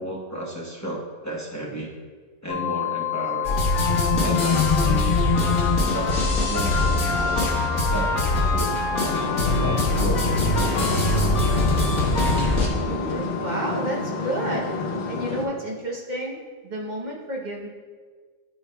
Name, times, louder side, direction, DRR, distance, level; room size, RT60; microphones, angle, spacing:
voice 1, 0.0-1.9 2.4-3.7 4.2-5.2 5.9-8.8 9.6-10.3 10.7-11.6, right 1 dB, 15° left, -4 dB, 0.8 m, -33 dB
sound 1, 2.5-15.3, left 14 dB, 90° left, 2.0 m, -32 dB
sound 2, 3.4-12.7, left 2 dB, 65° left, 1.8 m, -22 dB
sound 3, 9.0-15.5, left 2 dB, 45° left, 0.9 m, -29 dB
voice 2, 12.8-14.7 15.1-17.7, right 1 dB, 35° right, -2 dB, 0.9 m, -30 dB
12.5 x 4.5 x 2.3 m, 1.5 s
omnidirectional pair, 1.5 m